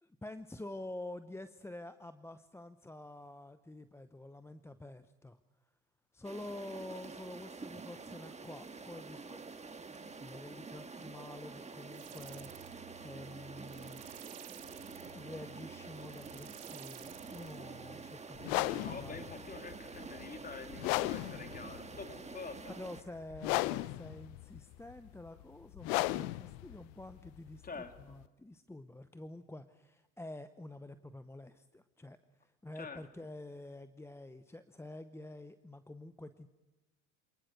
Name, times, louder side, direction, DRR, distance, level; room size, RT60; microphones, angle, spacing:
voice 1, 0.0-5.4 6.1-9.4 10.2-14.0 15.1-19.2 22.7-27.7 28.0-36.5, left 1 dB, 5° left, 12 dB, 0.8 m, -48 dB
sound 1, 6.2-23.0, right 4 dB, 15° right, 1.6 m, -48 dB
sound 2, 11.9-18.2, right 19 dB, 65° right, 1.1 m, -54 dB
sound 3, 18.4-28.3, left 19 dB, 65° left, 0.8 m, -37 dB
voice 2, 18.8-22.7 27.6-27.9 32.8-33.0, left 4 dB, 20° left, 8 dB, 2.3 m, -46 dB
27.0 x 19.5 x 6.6 m, 1.2 s
hypercardioid pair, 70°, 39 cm